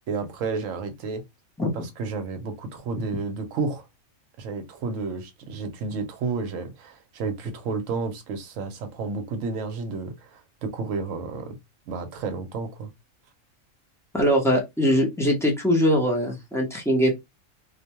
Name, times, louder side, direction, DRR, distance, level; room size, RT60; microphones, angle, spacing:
voice 1, 0.1-1.2 2.0-3.8 4.4-11.6 11.9-12.9, right 4 dB, 70° right, 1.0 m, -31 dB
voice 2, 14.1-17.2, equal, 5° left, 0.4 m, -22 dB
2.6 x 2.2 x 2.9 m
omnidirectional pair, 1.5 m